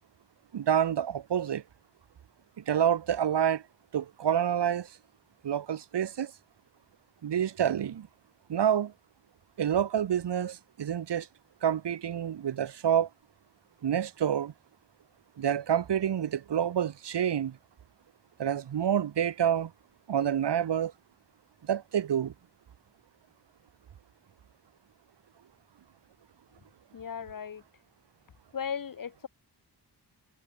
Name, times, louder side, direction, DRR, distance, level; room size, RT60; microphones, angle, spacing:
voice 1, 0.5-1.6 2.6-3.6 3.9-5.0 5.4-6.3 7.2-8.1 8.5-8.9 9.6-11.3 11.6-13.1 13.8-14.5 15.4-17.6 18.4-19.7 20.1-20.9 21.6-22.3, right 9 dB, 75° right, 2.2 m, -28 dB
voice 2, 26.9-27.6 28.5-29.3, left 7 dB, 50° left, 1.5 m, -36 dB
cardioid pair, 85°, 41 cm